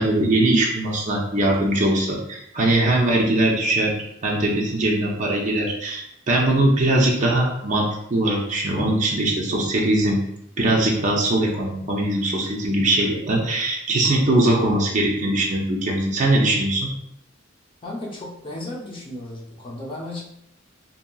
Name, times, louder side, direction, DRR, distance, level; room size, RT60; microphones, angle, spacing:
voice 1, 0.0-3.9 4.2-10.2 10.6-16.9, right 1 dB, 40° right, -3 dB, 0.5 m, -21 dB
voice 2, 17.8-20.2, left 1 dB, 25° left, -4 dB, 0.7 m, -34 dB
2.8 x 2.7 x 2.2 m, 0.78 s
head